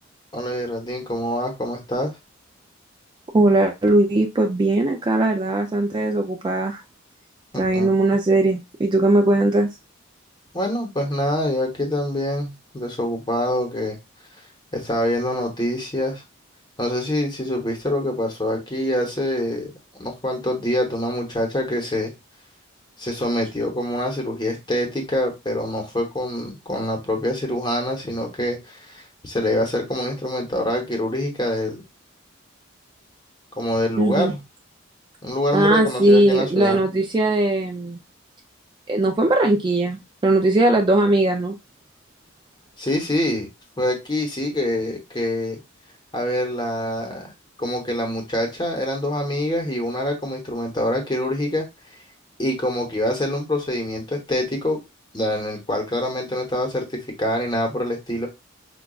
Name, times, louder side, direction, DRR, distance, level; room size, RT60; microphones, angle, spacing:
voice 1, 0.3-2.1 7.5-7.9 10.5-14.0 14.7-16.2 16.8-19.7 20.0-22.1 23.0-31.8 33.6-34.4 35.2-36.8 42.8-43.5 43.8-45.6 46.1-47.3 47.6-51.7 52.4-54.8 55.1-58.3, left 1 dB, 20° left, 2 dB, 0.9 m, -25 dB
voice 2, 3.3-6.8 7.6-9.7 34.0-34.3 35.5-38.0 38.9-41.5, right 2 dB, 20° right, 3 dB, 0.3 m, -19 dB
4.9 x 2.3 x 2.3 m, 0.23 s
head